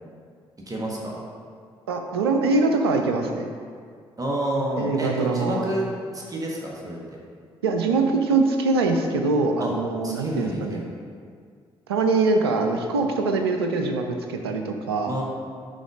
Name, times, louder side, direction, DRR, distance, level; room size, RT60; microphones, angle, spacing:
voice 1, 0.7-1.2 4.2-5.9 6.1-7.0 9.6-9.7 10.0-10.9 15.1-15.2, right 1 dB, 25° right, -3 dB, 1.5 m, -29 dB
voice 2, 1.9-3.5 4.8-5.7 7.6-10.8 11.9-15.2, right 3 dB, 80° right, 4 dB, 0.5 m, -23 dB
10.0 x 4.0 x 3.7 m, 2.1 s
figure-of-eight pair, 40°, 13 cm